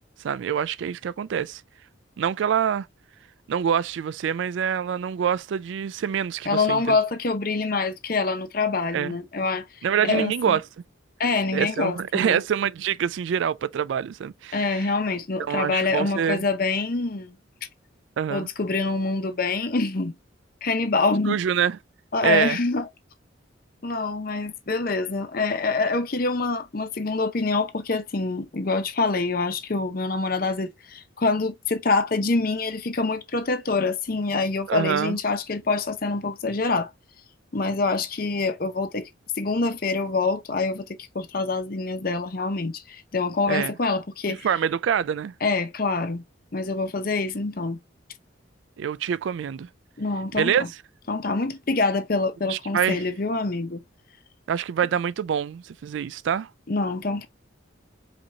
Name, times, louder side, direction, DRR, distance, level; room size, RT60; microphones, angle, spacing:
voice 1, 0.2-1.6 2.2-2.9 3.5-7.0 8.9-9.1 9.8-10.6 11.5-14.9 15.4-16.4 18.2-18.5 21.3-21.8 22.2-22.6 34.7-35.2 43.5-43.8 44.4-45.3 48.8-49.7 50.3-50.6 52.5-53.0 54.5-56.5, right 8 dB, 65° right, 0.3 m, -25 dB
voice 2, 6.5-9.7 10.0-10.6 11.2-12.4 14.5-17.3 18.3-20.1 20.6-21.4 22.1-22.8 23.8-36.9 37.5-39.1 39.4-44.5 45.4-46.2 46.5-47.8 50.0-50.7 51.1-53.8 56.7-57.3, left 3 dB, 45° left, 0.7 m, -25 dB
5.0 x 2.9 x 2.7 m
head